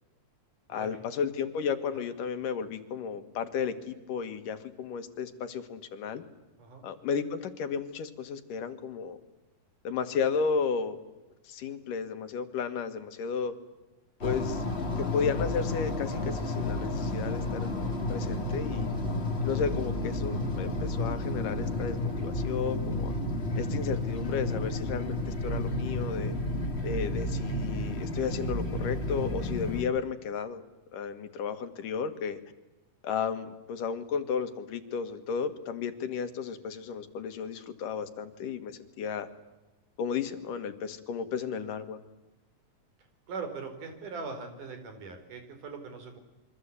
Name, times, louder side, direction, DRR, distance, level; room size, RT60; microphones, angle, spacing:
voice 1, 0.7-6.2 6.8-9.2 9.8-11.0 11.4-13.5 14.2-14.6 15.0-17.7 18.1-18.9 19.4-23.1 23.6-26.3 26.8-30.6 30.9-32.4 33.0-39.3 40.0-42.0, left 6 dB, 75° left, 9 dB, 3.3 m, -33 dB
sound 1, 14.2-29.8, left 2 dB, 20° left, 2.1 m, -31 dB
voice 2, 43.3-46.2, right 4 dB, 70° right, 6 dB, 5.6 m, -40 dB
27.0 x 24.5 x 8.4 m, 1.1 s
omnidirectional pair, 3.8 m